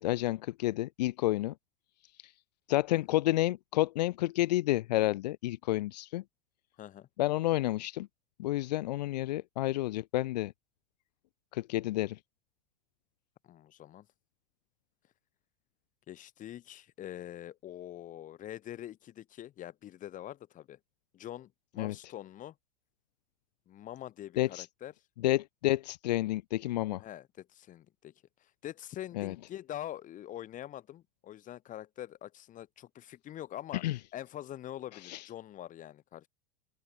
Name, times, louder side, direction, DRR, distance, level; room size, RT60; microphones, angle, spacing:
voice 1, 0.0-1.5 2.2-2.3 2.7-6.2 7.2-8.1 8.4-10.5 11.5-12.2 21.8-21.9 24.4-24.7 25.2-27.0 29.2-29.3 33.8-34.0 35.0-35.3, left 16 dB, 85° left, 0.7 m, -30 dB
voice 2, 6.8-7.1 13.4-14.1 16.1-20.8 21.1-22.5 23.7-24.9 27.0-28.1 28.4-33.8 34.1-36.3, left 12 dB, 40° left, 6.0 m, -44 dB
open air
supercardioid pair, 115°, 21 cm